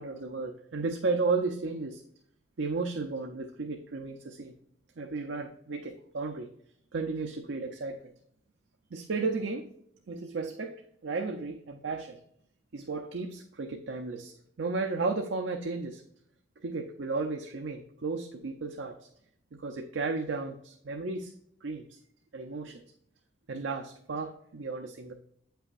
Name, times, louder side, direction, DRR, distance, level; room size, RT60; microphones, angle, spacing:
voice 1, 0.0-2.0 2.6-4.5 5.0-6.5 6.9-8.0 8.9-9.7 10.1-10.7 11.0-12.2 12.7-16.0 16.6-19.0 19.6-21.3 21.6-22.0 22.3-22.8 23.5-25.1, right 3 dB, 90° right, 2 dB, 0.7 m, -34 dB
8.4 x 5.7 x 2.5 m, 0.71 s
head